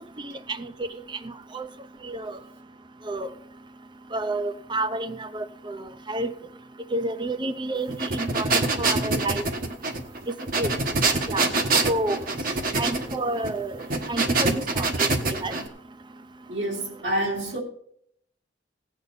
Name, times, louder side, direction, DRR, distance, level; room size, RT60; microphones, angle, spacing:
voice 1, 0.2-0.9 1.2-1.7 2.0-2.4 3.1-3.3 4.1-6.3 6.9-8.5 8.8-9.4 10.6-10.7 11.3-11.5 11.9-12.2 12.8-13.7 14.1-15.6, right 2 dB, 25° right, 0.7 m, -30 dB
sound 1, 7.9-15.7, right 3 dB, 50° right, 1.3 m, -25 dB
voice 2, 16.5-17.6, right 1 dB, 70° right, 2.2 m, -28 dB
16.5 x 8.9 x 4.1 m
head